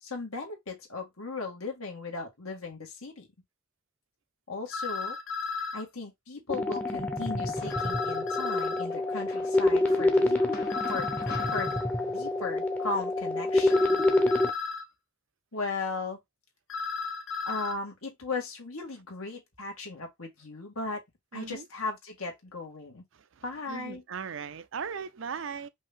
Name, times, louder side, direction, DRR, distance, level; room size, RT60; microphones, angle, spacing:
voice 1, 0.0-3.3 4.5-5.2 5.7-10.4 10.9-11.1 11.5-11.9 12.1-14.0 15.5-16.2 17.5-21.0 21.3-23.0 23.4-24.0, left 3 dB, 80° left, 2.0 m, -37 dB
sound 1, 4.7-5.8 7.7-8.8 10.7-11.8 13.7-14.8 16.7-17.7, left 4 dB, 60° left, 0.7 m, -34 dB
sound 2, 6.5-14.5, left 2 dB, 5° left, 0.7 m, -27 dB
sound 3, 7.6-8.2 8.9-14.0, left 3 dB, 45° left, 1.4 m, -48 dB
voice 2, 21.3-21.6 23.7-25.7, right 6 dB, 60° right, 0.5 m, -37 dB
5.3 x 2.8 x 3.6 m
head